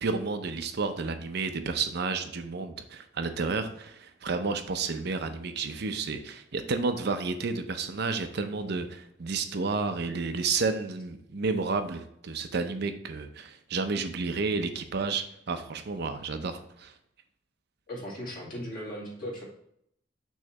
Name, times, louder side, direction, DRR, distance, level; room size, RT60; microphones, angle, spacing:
voice 1, 0.0-16.9, right 4 dB, 60° right, 8 dB, 0.6 m, -31 dB
voice 2, 17.9-19.4, equal, 50° left, -4 dB, 2.3 m, -37 dB
6.3 x 3.2 x 5.8 m, 0.72 s
head